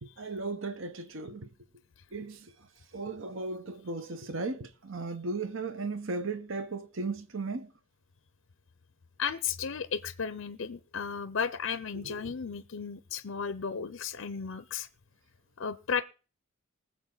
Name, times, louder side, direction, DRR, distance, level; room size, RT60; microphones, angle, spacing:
voice 1, 0.0-1.5 2.1-2.5 2.9-7.7 11.9-12.2, right 3 dB, 60° right, 1.0 m, -36 dB
voice 2, 9.2-14.9 15.6-16.0, left 6 dB, 60° left, 0.5 m, -34 dB
20.0 x 7.5 x 3.9 m
head